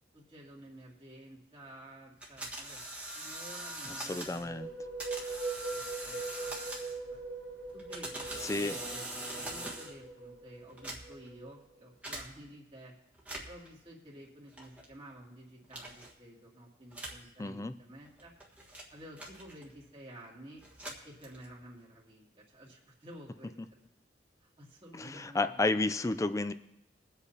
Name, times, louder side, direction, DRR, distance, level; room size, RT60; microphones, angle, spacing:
voice 1, 0.1-2.8 3.1-4.9 5.7-6.7 7.1-7.3 7.7-12.9 13.5-18.3 18.9-20.6 21.0-23.8 24.4-25.8, right 1 dB, 30° right, -4 dB, 2.5 m, -52 dB
sound 1, 2.2-4.5 5.0-7.1 7.7-10.0 10.7-11.3 12.0-12.3 13.1-13.7 14.6-14.9 15.7-16.1 16.9-17.3 18.1-19.8 20.6-21.6, right 1 dB, 5° right, 1.5 m, -42 dB
voice 2, 3.9-4.7 8.4-8.8 17.4-17.7 24.9-26.5, left 2 dB, 15° left, 11 dB, 0.4 m, -32 dB
sound 2, 4.2-11.8, right 3 dB, 90° right, 1.6 m, -42 dB
22.5 x 8.1 x 2.8 m, 0.86 s
head